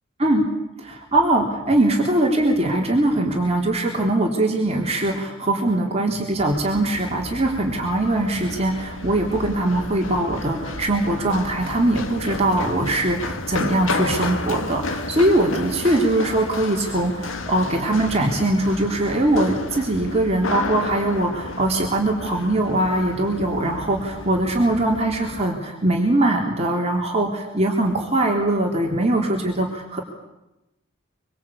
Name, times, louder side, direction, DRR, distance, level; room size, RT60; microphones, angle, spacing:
voice 1, 0.8-30.0, right 1 dB, 30° right, 0 dB, 3.6 m, -21 dB
Run, 6.4-25.4, left 3 dB, 65° left, 1.9 m, -32 dB
25.5 x 24.5 x 8.6 m, 0.95 s
head